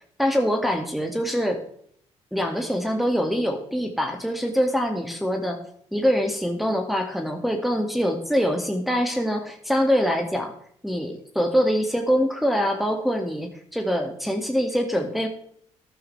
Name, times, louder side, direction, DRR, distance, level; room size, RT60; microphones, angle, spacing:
voice 1, 0.2-1.6 2.3-5.6 5.9-10.5 10.8-15.3, equal, ahead, 2 dB, 2.0 m, -24 dB
13.0 x 11.0 x 3.3 m, 0.63 s
hypercardioid pair, 45°, 15 cm